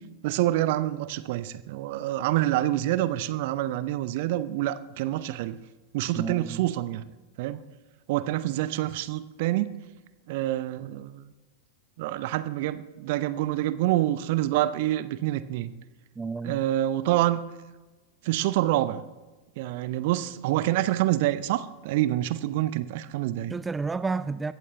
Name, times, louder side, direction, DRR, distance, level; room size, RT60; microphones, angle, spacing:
voice 1, 0.2-5.6 5.9-7.0 7.4-7.6 8.1-9.7 10.3-11.3 12.0-15.7 16.4-17.4 18.2-19.0 19.6-23.6, right 14 dB, 50° right, 0.8 m, -27 dB
voice 2, 6.1-6.7 16.2-16.6 23.5-24.5, right 4 dB, 10° right, 0.4 m, -31 dB
21.0 x 15.0 x 3.3 m
figure-of-eight pair, 90°, 0 cm